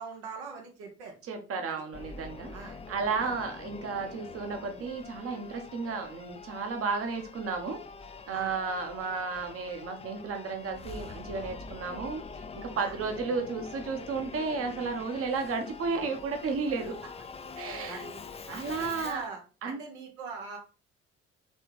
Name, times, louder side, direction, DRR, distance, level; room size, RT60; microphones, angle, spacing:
voice 1, 0.0-1.3 2.5-2.8 3.2-3.4 8.3-8.6 12.8-13.0 17.6-18.1 18.5-20.6, right 5 dB, 75° right, 1 dB, 1.0 m, -42 dB
voice 2, 1.2-7.8 8.3-17.0 17.6-18.1 18.5-19.2 19.6-19.8, right 4 dB, 45° right, 5 dB, 1.0 m, -33 dB
Singing / Musical instrument, 1.9-19.3, left 4 dB, 20° left, 0.4 m, -44 dB
4.3 x 3.3 x 3.1 m, 0.34 s
figure-of-eight pair, 50°, 33 cm